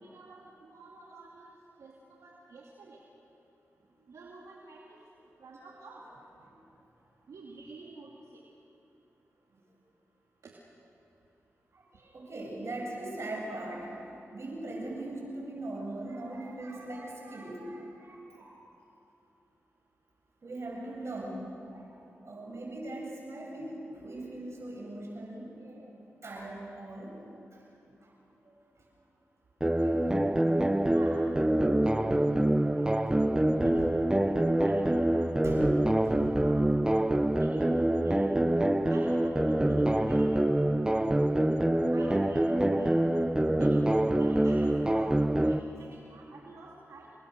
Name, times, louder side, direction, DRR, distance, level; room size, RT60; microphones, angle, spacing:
voice 1, 0.0-1.5 1.8-3.0 4.1-5.0 5.4-6.0 7.3-8.4 10.4-10.5 30.9-33.7 34.2-35.7 36.0-36.9 37.4-38.3 38.9-40.3 41.3-41.5 41.9-43.0 43.6-47.1, right 3 dB, 80° right, -3 dB, 2.5 m, -50 dB
voice 2, 11.7-18.6 20.4-25.9 26.2-27.2 27.5-27.6 28.0-28.2 28.4-28.6 29.6-30.1 30.5-30.6 31.7-31.8 32.9-33.8 35.4-35.7 36.2-36.3 40.9-41.0, right 1 dB, 60° right, -2 dB, 7.7 m, -40 dB
sound 1, 29.6-45.6, right 1 dB, 15° right, 1.0 m, -25 dB
28.5 x 22.0 x 6.7 m, 2.9 s
cardioid pair, 45°, 5 cm